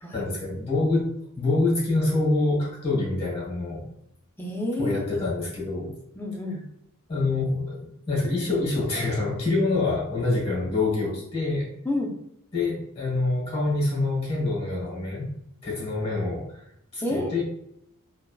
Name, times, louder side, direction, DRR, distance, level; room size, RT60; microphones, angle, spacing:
voice 1, 0.1-3.9 4.8-5.9 7.1-11.7 12.5-15.3 15.6-16.6 16.9-17.4, left 2 dB, 25° left, -2 dB, 1.3 m, -26 dB
voice 2, 4.4-5.0 6.1-6.6 11.8-12.2 17.0-17.3, left 1 dB, 10° left, 0 dB, 0.4 m, -29 dB
3.2 x 2.2 x 2.3 m, 0.74 s
head